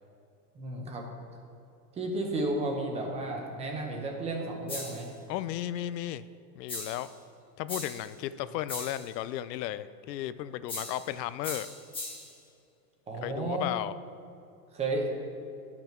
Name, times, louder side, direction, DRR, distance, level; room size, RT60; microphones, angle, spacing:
voice 1, 0.5-1.0 1.9-5.1 13.1-13.7 14.7-15.1, right 2 dB, 15° right, 1 dB, 0.7 m, -32 dB
sound 1, 4.7-5.1 6.7-7.1 7.7-8.1 8.7-9.1 10.7-11.1 11.4-12.3, left 2 dB, 10° left, 1.3 m, -39 dB
voice 2, 5.3-6.2 6.5-7.1 7.6-11.7 13.2-13.9, left 13 dB, 85° left, 15 dB, 0.6 m, -34 dB
10.5 x 5.9 x 4.4 m, 2.6 s
supercardioid pair, 160°, 48 cm